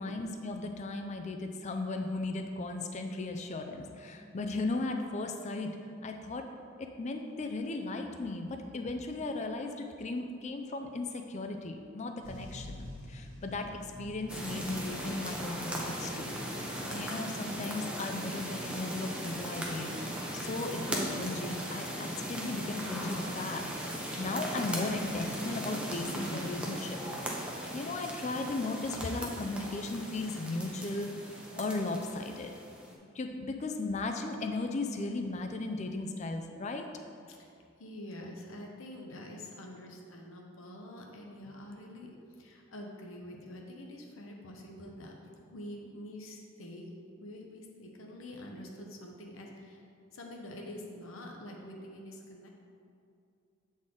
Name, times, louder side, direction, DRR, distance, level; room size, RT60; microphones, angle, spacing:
voice 1, 0.0-5.8 6.0-6.5 6.8-9.7 10.0-13.7 14.0-16.3 16.9-19.9 20.3-27.0 27.7-31.2 31.6-32.5 33.1-36.9, left 2 dB, 35° left, 5 dB, 0.4 m, -36 dB
sound 1, 12.2-19.7 20.4-20.5, equal, 60° right, 1.5 m, -50 dB
sound 2, 14.3-32.9, equal, 5° right, 0.6 m, -38 dB
voice 2, 37.8-45.1 45.5-46.9 47.2-49.8 50.1-52.5, left 1 dB, 80° left, 1 dB, 0.8 m, -46 dB
7.4 x 4.1 x 3.7 m, 2.5 s
head